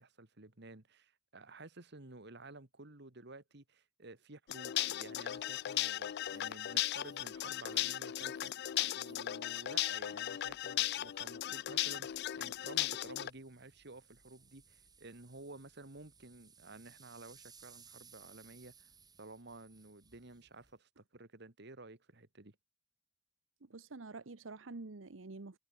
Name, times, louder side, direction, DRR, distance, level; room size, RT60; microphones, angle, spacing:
voice 1, 0.0-18.9 19.2-22.6, right 2 dB, 60° right, 2.1 m, -53 dB
sound 1, 4.5-13.3, left 13 dB, 60° left, 0.4 m, -36 dB
sound 2, 5.3-20.8, right 5 dB, 20° right, 3.2 m, -64 dB
voice 2, 23.6-25.6, right 3 dB, 80° right, 1.0 m, -47 dB
head